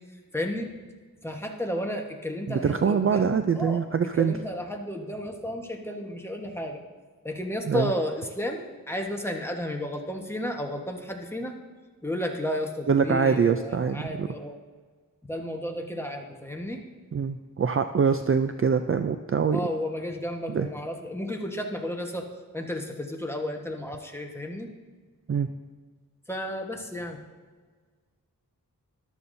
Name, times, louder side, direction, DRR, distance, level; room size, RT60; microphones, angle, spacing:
voice 1, 0.3-0.7 1.2-6.8 7.2-11.5 12.0-14.6 15.3-16.8 19.5-22.3 22.5-24.7 26.3-27.2, left 1 dB, 5° left, 1 dB, 1.3 m, -33 dB
voice 2, 2.5-4.4 7.7-7.9 12.9-14.3 17.1-19.7 20.5-20.7 25.3-25.5, right 6 dB, 40° right, 8 dB, 0.4 m, -24 dB
14.0 x 11.5 x 2.7 m, 1.5 s
wide cardioid pair, 90°, 36 cm